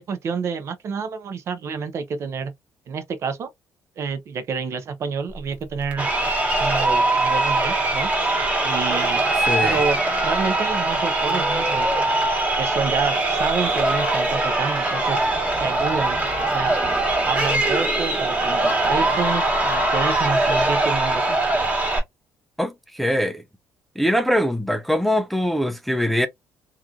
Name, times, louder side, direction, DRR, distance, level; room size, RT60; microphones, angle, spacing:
voice 1, 0.0-2.5 2.9-3.5 4.0-6.1 6.6-8.1 8.6-9.2 9.6-12.0 12.6-15.2 15.6-16.2 16.5-16.8 17.2-21.4, right 5 dB, 50° right, 0.6 m, -28 dB
Crowd, 5.9-22.0, right 2 dB, 20° right, 1.4 m, -22 dB
voice 2, 9.5-9.8 22.6-23.4 24.0-26.3, equal, ahead, 0.4 m, -22 dB
2.9 x 2.4 x 2.4 m
cardioid pair, 110°, 6 cm